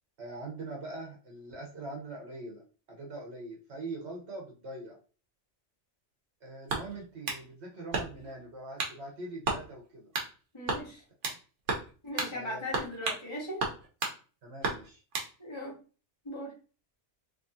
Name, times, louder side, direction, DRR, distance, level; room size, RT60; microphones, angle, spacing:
voice 1, 0.2-2.6 2.9-5.0 6.4-10.1 11.2-11.4 12.3-12.6 14.4-15.0, right 2 dB, 70° right, -2 dB, 1.2 m, -42 dB
sound 1, 6.7-7.4 7.9-8.3 8.8-9.0 9.4-9.6 10.1-10.3 10.7-11.4 11.7-11.9 12.2-12.3 12.7-13.2 13.6-14.2 14.6-15.3, right 3 dB, 85° right, 1.2 m, -33 dB
voice 2, 10.5-11.0 12.0-13.6 15.4-15.7 16.2-16.5, left 1 dB, 25° left, -6 dB, 1.7 m, -38 dB
3.6 x 3.1 x 2.7 m, 0.36 s
omnidirectional pair, 1.2 m